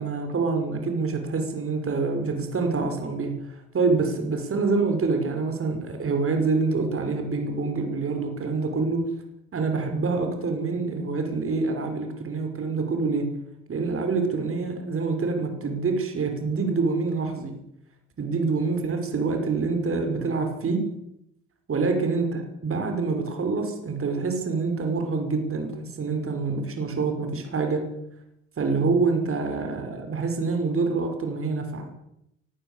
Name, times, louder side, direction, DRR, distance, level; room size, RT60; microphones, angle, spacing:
voice 1, 0.0-9.1 9.5-13.3 13.7-17.5 18.2-20.9 21.7-27.9 28.6-31.9, right 4 dB, 45° right, 5 dB, 6.2 m, -26 dB
24.0 x 15.0 x 8.6 m, 0.81 s
cardioid pair, 90°, 30 cm